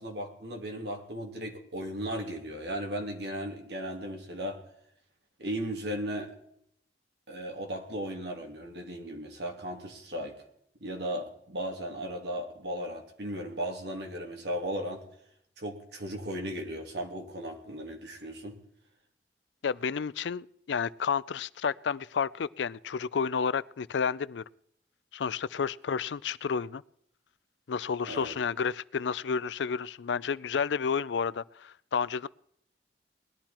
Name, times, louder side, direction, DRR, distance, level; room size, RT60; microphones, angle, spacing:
voice 1, 0.0-4.6 5.4-6.3 7.3-10.3 10.8-15.0 15.6-18.6 28.1-28.3, equal, 70° right, 2.8 m, -36 dB
voice 2, 19.6-24.4 25.1-26.8 27.7-32.3, left 6 dB, 85° left, 0.4 m, -31 dB
19.5 x 12.0 x 4.4 m
head